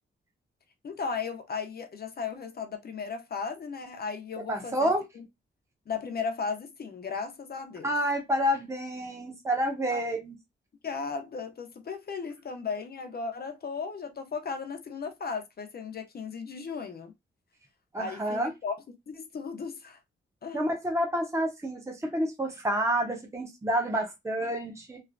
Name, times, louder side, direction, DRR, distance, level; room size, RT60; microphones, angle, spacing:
voice 1, 0.8-5.2 5.9-7.9 9.9-10.0 10.8-17.1 18.0-18.7 19.1-20.0 20.4-20.6, left 5 dB, 50° left, 0.6 m, -36 dB
voice 2, 4.5-5.0 7.8-10.3 17.9-18.5 20.5-25.0, equal, 15° right, 0.8 m, -29 dB
3.1 x 2.8 x 2.5 m
wide cardioid pair, 130°, 20 cm